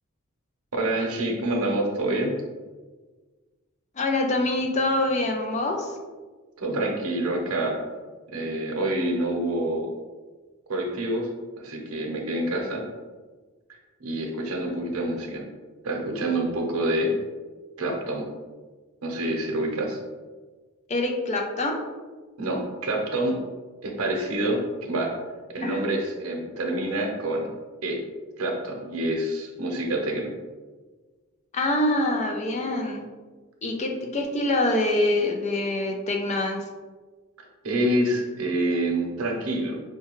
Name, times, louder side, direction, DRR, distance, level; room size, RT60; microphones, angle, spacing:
voice 1, 0.7-2.3 6.6-7.8 8.3-9.9 10.7-11.3 11.6-12.8 14.0-15.4 15.8-17.1 17.8-18.3 19.0-20.0 22.4-23.4 23.8-25.1 25.5-27.5 27.8-28.0 28.4-30.3 37.4-39.8, right 1 dB, 85° right, 1 dB, 0.7 m, -27 dB
voice 2, 3.9-6.0 20.9-21.8 25.6-25.8 31.5-33.1 33.6-36.7, left 2 dB, 30° left, 3 dB, 0.4 m, -25 dB
4.6 x 2.3 x 3.0 m, 1.3 s
head